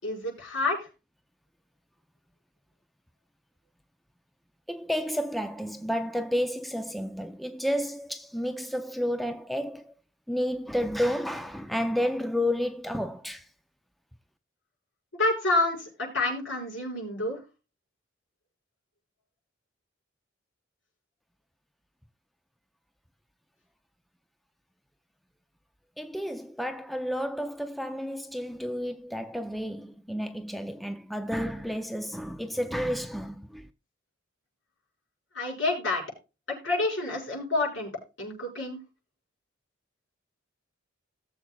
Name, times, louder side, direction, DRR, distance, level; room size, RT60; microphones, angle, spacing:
voice 1, 0.0-0.9 15.2-17.4 35.3-36.0 36.5-37.9 38.2-38.8, left 2 dB, 70° left, 5.7 m, -28 dB
voice 2, 4.7-9.9 10.3-13.5 26.0-33.7, equal, ahead, 0.4 m, -31 dB
18.5 x 7.3 x 2.3 m
head